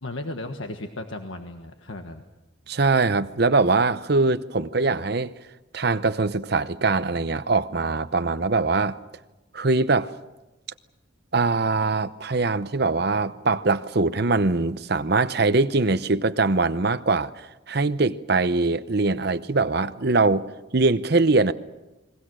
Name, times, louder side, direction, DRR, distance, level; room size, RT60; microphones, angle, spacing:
voice 1, 0.0-2.2, left 2 dB, 75° left, 1.4 m, -35 dB
voice 2, 2.7-5.3 5.7-9.0 9.5-10.1 11.3-20.5 20.7-21.5, right 3 dB, 55° right, 0.8 m, -22 dB
30.0 x 21.5 x 6.3 m
head